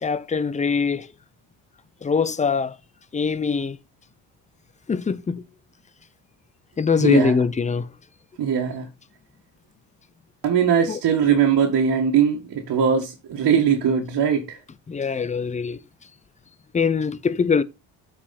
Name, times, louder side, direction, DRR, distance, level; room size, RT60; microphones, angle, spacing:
voice 1, 0.0-1.1 2.0-2.7 3.1-3.8 4.9-5.4 6.8-7.9 10.9-11.0 14.9-15.8 16.7-17.6, left 5 dB, 15° left, 0.5 m, -22 dB
voice 2, 7.0-7.5 8.4-8.9 10.4-14.6, right 7 dB, 55° right, 1.9 m, -20 dB
8.1 x 5.1 x 4.2 m
cardioid pair, 115°, 44 cm